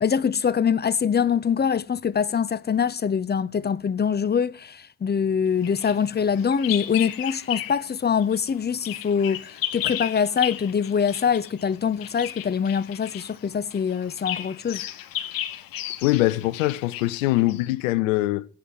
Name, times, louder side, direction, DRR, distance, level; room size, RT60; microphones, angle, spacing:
voice 1, 0.0-14.8, left 7 dB, 25° left, 0.7 m, -24 dB
Bird vocalization bird call bird song, 5.6-7.9 8.2-17.7, left 12 dB, 60° left, 1.3 m, -34 dB
voice 2, 16.0-18.4, left 17 dB, 80° left, 0.8 m, -22 dB
8.4 x 8.4 x 9.2 m
hypercardioid pair, 55°, 38 cm